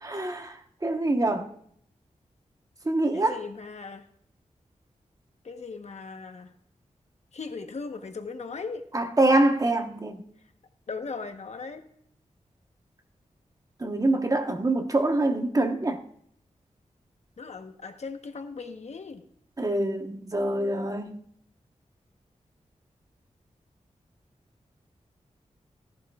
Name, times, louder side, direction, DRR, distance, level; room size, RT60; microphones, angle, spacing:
voice 1, 0.0-1.5 2.8-3.4 8.9-10.2 13.8-16.0 19.6-21.2, right 2 dB, 30° right, 1.2 m, -25 dB
voice 2, 3.1-4.0 5.4-6.5 7.3-8.8 10.9-11.8 17.4-19.2, left 4 dB, 60° left, 1.1 m, -38 dB
16.5 x 11.0 x 2.4 m
wide cardioid pair, 85°, 13 cm